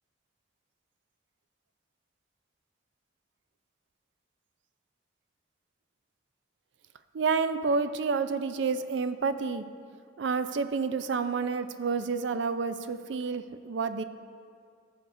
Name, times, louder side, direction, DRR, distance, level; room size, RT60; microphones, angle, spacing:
voice 1, 7.1-9.6 10.2-14.0, right 4 dB, 70° right, 11 dB, 0.4 m, -29 dB
16.5 x 6.8 x 2.6 m, 2.3 s
head